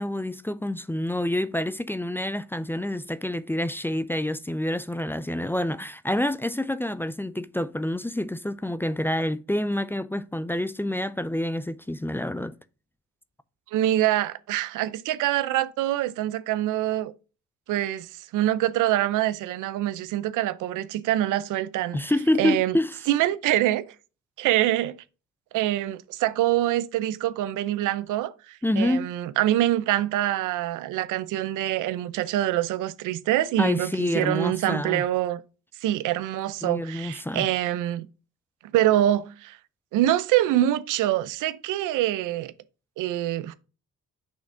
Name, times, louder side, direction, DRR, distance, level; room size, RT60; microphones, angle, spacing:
voice 1, 0.0-12.5 21.9-23.0 28.6-29.1 33.6-35.0 36.6-37.5, left 1 dB, 5° left, 0.4 m, -27 dB
voice 2, 13.7-17.1 17.7-22.0 22.4-22.8 23.1-23.9 24.4-25.0 25.5-35.4 35.8-38.1 38.7-39.6 39.9-42.5 43.0-43.5, right 13 dB, 90° right, 0.6 m, -25 dB
6.4 x 3.5 x 5.0 m
cardioid pair, 90°, 30 cm